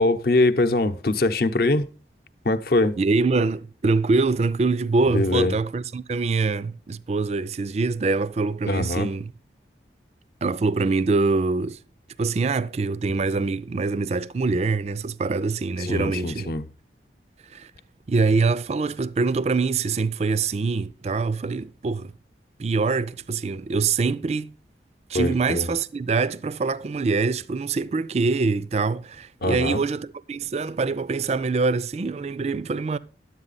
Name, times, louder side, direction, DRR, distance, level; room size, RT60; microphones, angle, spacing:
voice 1, 0.0-1.9 2.4-3.0 5.1-5.6 8.7-9.1 15.8-16.6 25.1-25.7 29.4-29.8, left 2 dB, 60° left, 0.8 m, -22 dB
voice 2, 3.0-9.3 10.4-11.8 12.2-16.5 17.5-17.7 18.1-22.1 22.6-24.5 25.1-33.0, right 4 dB, 35° right, 0.4 m, -24 dB
11.0 x 8.2 x 4.0 m
head